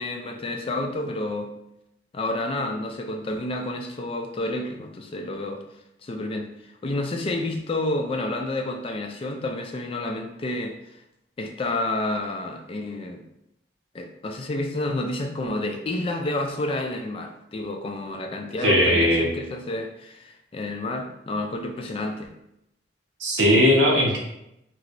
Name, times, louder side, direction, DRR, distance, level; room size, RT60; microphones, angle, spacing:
voice 1, 0.0-1.5 2.1-5.6 6.0-10.8 11.4-13.2 13.9-22.3, left 2 dB, 30° left, 4 dB, 0.3 m, -30 dB
voice 2, 18.6-19.3 23.2-24.2, equal, 85° right, -3 dB, 0.9 m, -18 dB
3.0 x 2.9 x 2.5 m, 0.83 s
head